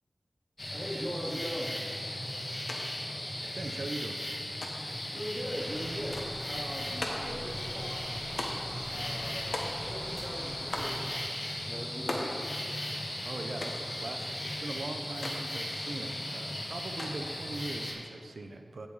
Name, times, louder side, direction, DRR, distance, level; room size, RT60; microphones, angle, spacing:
sound 1, 0.6-17.9, left 1 dB, 35° left, 1.9 m, -37 dB
voice 1, 0.7-1.8 5.1-6.2 6.5-8.2 8.9-9.6 9.9-11.2 11.7-12.3, equal, 15° right, -4 dB, 2.2 m, -40 dB
sound 2, 2.7-2.8 3.1-3.8 4.6-5.0 6.1-6.4 7.0-7.4 8.4-8.8 9.5-10.1 10.7-11.0 12.1-12.4 13.6-13.9 15.2-15.4 17.0-17.4, left 1 dB, 70° left, 1.2 m, -38 dB
voice 2, 3.4-4.2 13.2-18.9, right 2 dB, 85° right, 5 dB, 0.7 m, -41 dB
sound 3, 5.6-11.1, equal, 20° left, 2.1 m, -46 dB
15.0 x 5.8 x 4.1 m, 2.2 s
wide cardioid pair, 70°, 0 cm